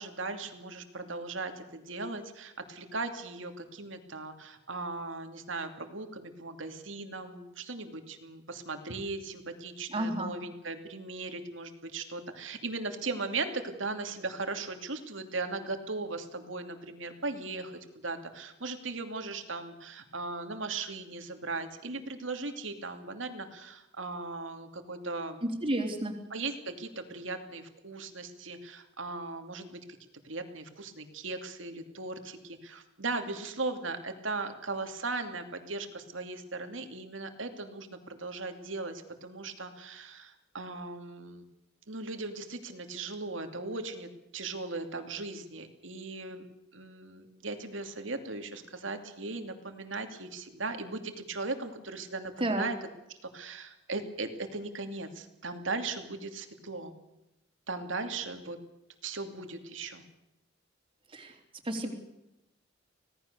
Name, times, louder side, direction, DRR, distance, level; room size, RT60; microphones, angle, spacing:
voice 1, 0.0-17.7 18.0-25.4 26.3-29.8 30.2-41.5 41.9-46.4 46.7-52.8 53.3-56.9 57.7-58.6 59.0-60.0, right 3 dB, 70° right, 6 dB, 2.6 m, -38 dB
voice 2, 9.9-10.4 25.4-26.2 52.4-52.7 61.1-61.3 61.6-61.9, right 1 dB, 25° right, 2 dB, 3.7 m, -31 dB
25.5 x 18.0 x 6.8 m, 0.91 s
head